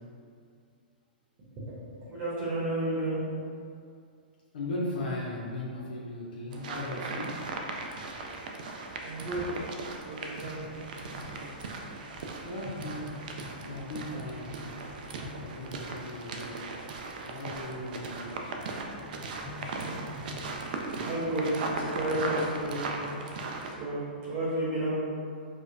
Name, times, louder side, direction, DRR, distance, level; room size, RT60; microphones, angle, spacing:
voice 1, 1.6-3.2 9.0-9.6 10.0-10.7 19.7-20.0 21.0-23.2 23.8-24.9, right 1 dB, 30° right, -8 dB, 0.9 m, -32 dB
voice 2, 4.5-7.4 7.9-8.0 12.4-13.2 13.6-14.5 15.4-16.6 17.3-18.7, left 1 dB, 70° left, -5 dB, 0.7 m, -37 dB
sound 1, 6.5-23.7, right 3 dB, 60° right, 0.4 m, -38 dB
sound 2, 10.4-18.3 19.0-20.5, left 2 dB, 10° right, 0.9 m, -48 dB
4.9 x 2.1 x 2.6 m, 2.3 s
hypercardioid pair, 130°, 5 cm